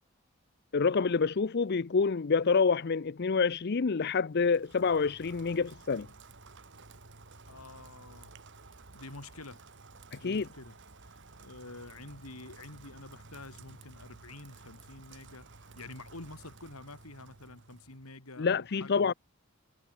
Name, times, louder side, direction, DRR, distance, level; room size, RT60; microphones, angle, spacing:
voice 1, 0.7-6.1 10.1-10.5 18.4-19.1, left 5 dB, 50° left, 0.5 m, -27 dB
Rain, 4.3-18.1, right 3 dB, 55° right, 2.1 m, -53 dB
voice 2, 7.5-8.3 8.9-9.6 10.1-10.8 11.4-15.5 15.8-19.1, left 2 dB, 90° left, 3.9 m, -48 dB
head